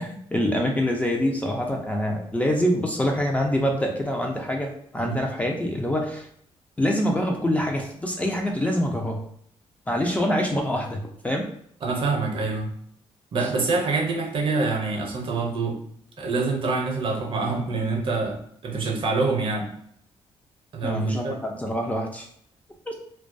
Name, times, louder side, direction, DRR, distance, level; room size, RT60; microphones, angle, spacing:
voice 1, 0.0-6.3 6.8-9.2 9.9-11.4 20.8-22.3 22.9-23.0, equal, 15° left, 1 dB, 0.4 m, -25 dB
voice 2, 11.8-12.7 13.3-15.8 16.2-19.7 20.7-21.4, right 3 dB, 50° right, 1 dB, 0.6 m, -26 dB
2.2 x 2.2 x 2.5 m, 0.66 s
cardioid pair, 105°, 11 cm